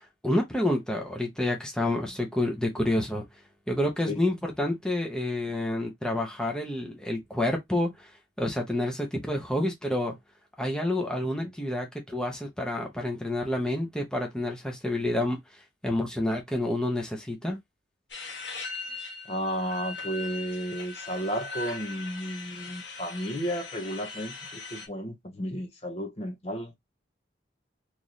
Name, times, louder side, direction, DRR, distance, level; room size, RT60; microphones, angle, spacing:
voice 1, 0.0-3.2 3.7-8.1 8.4-10.1 10.6-15.4 15.8-17.6, left 1 dB, 5° left, 0.8 m, -29 dB
sound 1, 18.1-24.9, left 4 dB, 70° left, 1.2 m, -40 dB
voice 2, 19.3-26.7, equal, 35° left, 0.7 m, -33 dB
3.1 x 2.6 x 4.0 m
head